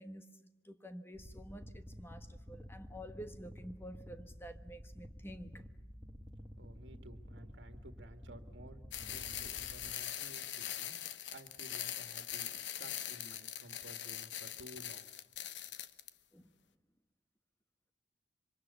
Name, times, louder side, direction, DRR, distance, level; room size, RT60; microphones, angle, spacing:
voice 1, 0.0-5.6 16.3-16.5, equal, 15° left, 1.3 m, -50 dB
sound 1, 1.1-9.9, equal, 5° right, 1.9 m, -51 dB
voice 2, 6.6-11.0 11.3-15.1, right 1 dB, 75° right, 1.9 m, -55 dB
sound 2, 8.9-16.1, left 11 dB, 75° left, 1.1 m, -42 dB
26.5 x 25.0 x 7.1 m
head